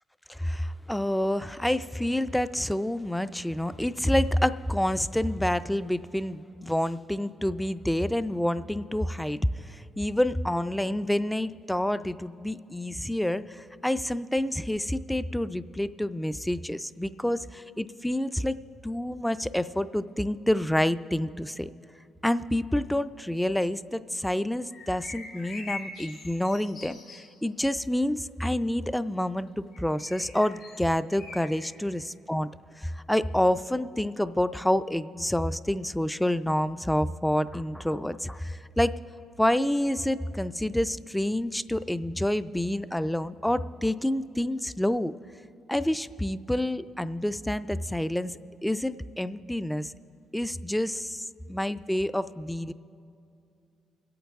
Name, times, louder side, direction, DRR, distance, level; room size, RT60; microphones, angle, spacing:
voice 1, 0.3-9.4 9.7-18.6 18.8-21.7 22.2-32.5 32.8-38.9 39.4-45.1 45.7-48.3 48.6-49.9 50.3-52.7, left 1 dB, 5° left, 14 dB, 0.3 m, -28 dB
sound 1, 24.7-27.3 29.7-31.7, left 3 dB, 85° left, 2.6 m, -43 dB
24.5 x 8.6 x 3.5 m, 2.5 s
cardioid pair, 90°, 0 cm